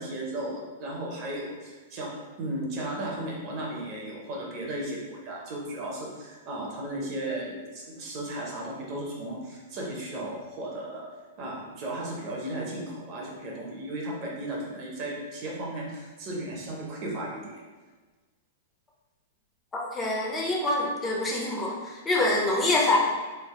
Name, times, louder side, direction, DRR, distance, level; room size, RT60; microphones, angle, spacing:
voice 1, 0.0-11.1 11.4-17.6, right 1 dB, 30° right, -2 dB, 0.7 m, -35 dB
voice 2, 19.9-23.0, left 2 dB, 10° left, -3 dB, 0.5 m, -25 dB
3.3 x 2.5 x 3.6 m, 1.3 s
supercardioid pair, 170°, 0 cm